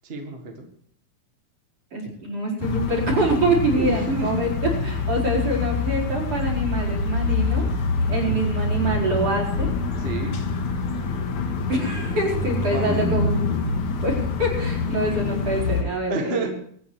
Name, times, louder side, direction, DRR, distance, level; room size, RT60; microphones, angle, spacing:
voice 1, 0.0-0.7 3.7-4.4 4.9-5.0 8.1-8.4 10.0-10.4 12.6-13.1 16.1-16.5, right 2 dB, 25° right, 2 dB, 1.4 m, -29 dB
voice 2, 1.9-4.5 4.8-7.7 8.1-9.7 11.7-13.5 13.9-16.5, right 1 dB, 55° right, 1 dB, 5.8 m, -25 dB
sound 1, 2.6-15.8, left 3 dB, 80° left, 3.1 m, -25 dB
24.0 x 9.6 x 4.7 m, 0.63 s
omnidirectional pair, 3.5 m